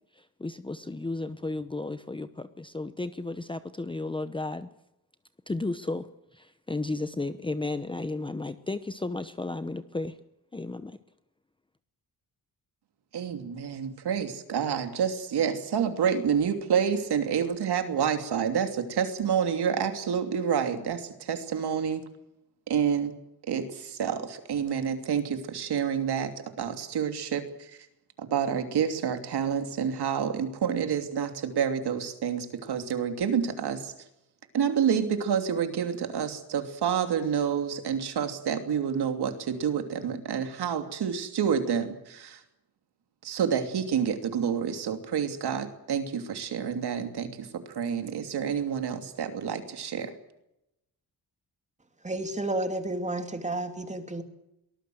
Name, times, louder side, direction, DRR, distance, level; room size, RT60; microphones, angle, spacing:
voice 1, 0.1-4.7 5.5-10.2 10.5-11.0, left 2 dB, 15° left, 11 dB, 0.9 m, -34 dB
voice 2, 13.1-22.0 22.7-23.2 23.4-27.9 28.2-34.1 34.5-42.4 43.2-50.1, right 7 dB, 85° right, 7 dB, 3.0 m, -28 dB
voice 3, 52.0-54.2, right 2 dB, 20° right, 6 dB, 2.6 m, -31 dB
23.5 x 19.5 x 7.9 m, 0.86 s
wide cardioid pair, 145°, 38 cm